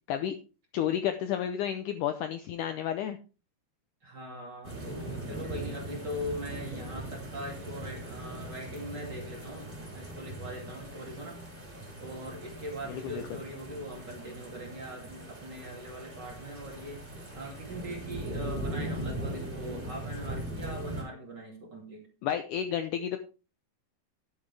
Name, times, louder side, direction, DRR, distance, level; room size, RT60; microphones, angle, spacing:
voice 1, 0.7-3.2 12.9-13.4 22.2-23.2, left 10 dB, 75° left, 8 dB, 1.9 m, -31 dB
voice 2, 4.0-11.4 12.0-17.0 17.3-22.1, equal, 30° right, 0 dB, 2.7 m, -41 dB
sound 1, 4.6-21.0, right 1 dB, 15° right, 3.3 m, -40 dB
11.0 x 9.9 x 3.3 m, 0.33 s
omnidirectional pair, 4.4 m